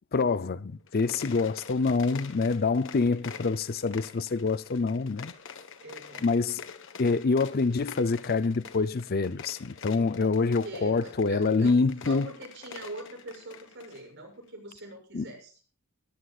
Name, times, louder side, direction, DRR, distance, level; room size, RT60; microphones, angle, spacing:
voice 1, 0.1-5.3 6.2-6.6 7.0-12.3 15.1-15.3, left 4 dB, 45° left, 0.5 m, -26 dB
sound 1, 0.8-14.1, left 6 dB, 65° left, 1.3 m, -46 dB
voice 2, 2.0-2.5 5.8-6.3 10.1-11.7 12.0-15.5, right 2 dB, 60° right, 6.8 m, -43 dB
21.5 x 14.5 x 2.4 m
head